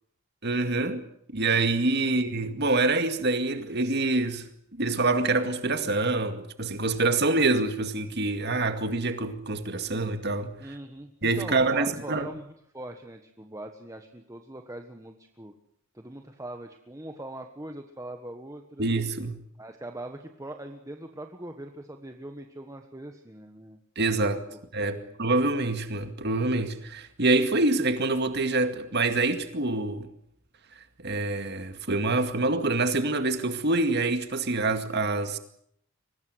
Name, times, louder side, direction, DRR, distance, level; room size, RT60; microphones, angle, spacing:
voice 1, 0.4-1.0 1.3-4.4 4.7-10.6 11.2-12.3 18.8-19.4 24.0-24.4 24.7-30.1 31.0-35.4, right 2 dB, 55° right, 2.2 m, -26 dB
voice 2, 10.6-15.5 15.9-18.9 19.6-23.8 24.5-24.6 24.9-25.1, right 1 dB, 15° right, 1.4 m, -41 dB
24.0 x 19.0 x 8.0 m
head